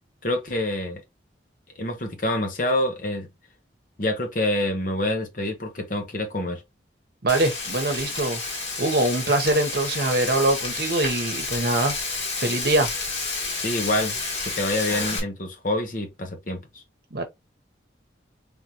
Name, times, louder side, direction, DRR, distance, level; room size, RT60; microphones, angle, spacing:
voice 1, 0.2-1.0 1.8-3.3 4.0-6.6 13.6-14.2 14.4-16.8, left 1 dB, 45° left, 1.0 m, -26 dB
voice 2, 7.2-12.9 17.1-17.2, right 2 dB, 55° right, 0.9 m, -24 dB
Frying (food), 7.3-15.2, left 3 dB, 85° left, 2.1 m, -30 dB
3.7 x 3.5 x 2.9 m
head